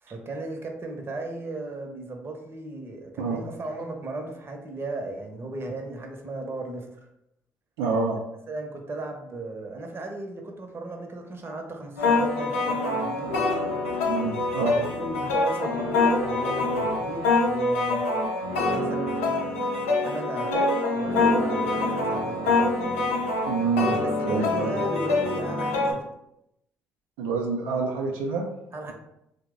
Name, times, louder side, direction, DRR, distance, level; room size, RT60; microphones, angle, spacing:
voice 1, 0.0-7.0 8.5-13.8 14.7-18.0 18.7-19.3 20.0-22.9 24.0-26.1 28.7-28.9, right 2 dB, 35° right, 3 dB, 0.7 m, -36 dB
voice 2, 7.8-8.2 14.0-14.8 23.5-23.9 24.2-24.8 27.2-28.4, right 4 dB, 80° right, 0 dB, 0.4 m, -27 dB
sound 1, 12.0-25.9, left 3 dB, 90° left, 0.5 m, -25 dB
2.9 x 2.0 x 3.6 m, 0.81 s
hypercardioid pair, 55°, 7 cm